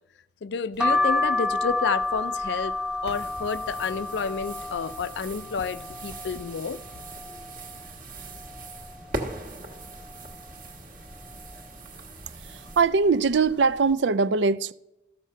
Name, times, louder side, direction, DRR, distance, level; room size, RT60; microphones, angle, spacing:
voice 1, 0.4-2.7 3.0-6.8, left 5 dB, 70° left, 0.4 m, -30 dB
sound 1, 0.8-6.5 6.9-7.7 8.1-8.2 8.4-9.5 10.0-10.4 11.1-11.4 12.2-12.5 12.7-12.9, left 2 dB, 5° right, 0.4 m, -29 dB
sound 2, 3.0-12.8, right 2 dB, 45° right, 1.3 m, -41 dB
voice 2, 12.4-14.7, right 4 dB, 70° right, 0.4 m, -22 dB
14.0 x 6.6 x 5.5 m
head